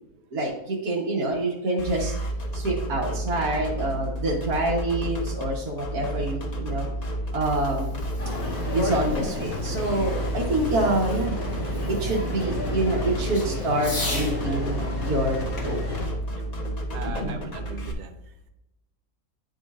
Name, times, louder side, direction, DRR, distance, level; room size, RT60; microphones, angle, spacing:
voice 1, 0.3-2.1 2.5-6.9 7.3-7.9 8.7-11.4 11.9-15.8 17.2-17.4, right 2 dB, 70° right, -3 dB, 1.6 m, -27 dB
sound 1, 1.8-17.9, right 1 dB, 35° left, 0.8 m, -31 dB
Fireworks, 7.2-14.4 15.6-17.2, left 2 dB, 50° left, 2.1 m, -40 dB
sound 2, 8.2-16.1, left 3 dB, 70° left, 2.0 m, -32 dB
voice 2, 16.9-18.1, right 6 dB, 55° right, 5 dB, 1.0 m, -38 dB
10.0 x 5.2 x 2.4 m, 0.92 s
omnidirectional pair, 1.7 m